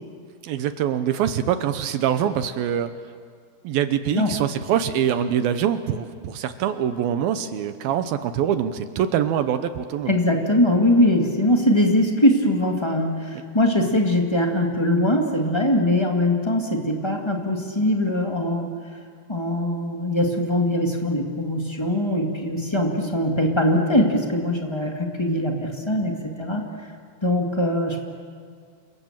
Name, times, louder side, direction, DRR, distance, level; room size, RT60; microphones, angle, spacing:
voice 1, 0.4-2.9 3.6-10.1, right 9 dB, 75° right, 10 dB, 2.5 m, -24 dB
voice 2, 10.1-18.7 19.3-26.6 27.2-28.0, left 1 dB, 30° left, 1 dB, 0.5 m, -21 dB
29.5 x 25.5 x 7.5 m, 2.1 s
omnidirectional pair, 4.8 m